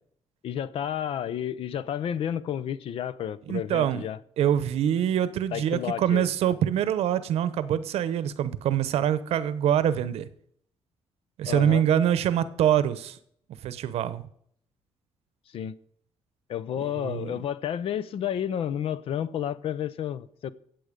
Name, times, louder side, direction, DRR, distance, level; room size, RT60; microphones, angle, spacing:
voice 1, 0.4-4.2 5.5-6.3 11.5-11.8 15.5-15.7 16.5-20.5, left 9 dB, 60° left, 0.7 m, -31 dB
voice 2, 3.5-4.0 4.4-10.3 11.4-13.2 13.6-14.3 16.8-17.4, right 10 dB, 75° right, 0.9 m, -25 dB
14.5 x 7.8 x 5.2 m
cardioid pair, 110°, 11 cm